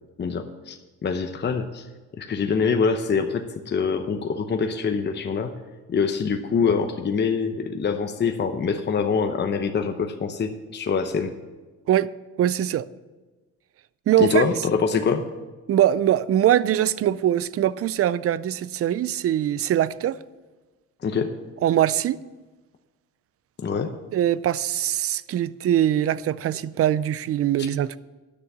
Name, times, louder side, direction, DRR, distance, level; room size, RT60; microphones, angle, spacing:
voice 1, 0.2-1.9 2.2-5.6 5.9-11.3 14.2-15.3 21.0-21.3 23.6-23.9, left 5 dB, 35° left, 0.8 m, -25 dB
voice 2, 12.4-12.9 14.1-14.5 15.7-20.2 21.6-22.2 24.1-28.0, right 11 dB, 50° right, 0.4 m, -22 dB
9.8 x 6.4 x 8.3 m
cardioid pair, 95°, 31 cm